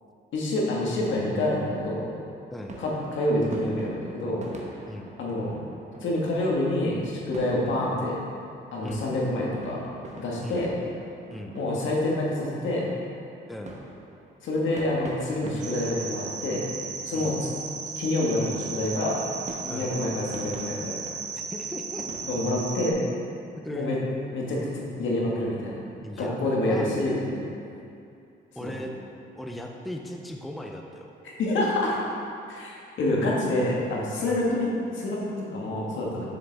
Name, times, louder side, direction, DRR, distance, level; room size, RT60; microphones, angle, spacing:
voice 1, 0.3-2.1 2.8-4.7 5.2-5.5 6.0-8.1 8.7-9.8 10.1-10.7 11.5-12.9 14.4-16.7 17.0-17.3 18.0-19.2 19.7-21.0 22.3-23.0 23.7-24.0 24.3-25.7 26.2-27.2 28.6-28.7 31.2-32.0 32.5-36.3, left 1 dB, 75° left, -4 dB, 1.7 m, -27 dB
sound 1, 2.7-22.6, right 2 dB, 35° right, 1.1 m, -45 dB
voice 2, 13.5-13.8 17.1-17.4 19.7-19.9 21.3-22.1 23.6-24.0 26.0-26.4 26.7-26.9 28.5-28.9 29.4-31.1 34.2-34.5, left 1 dB, ahead, 1 dB, 0.5 m, -38 dB
sound 2, 15.6-22.9, right 5 dB, 60° right, 0.9 m, -36 dB
7.0 x 6.9 x 3.5 m, 2.5 s
cardioid pair, 90°, 20 cm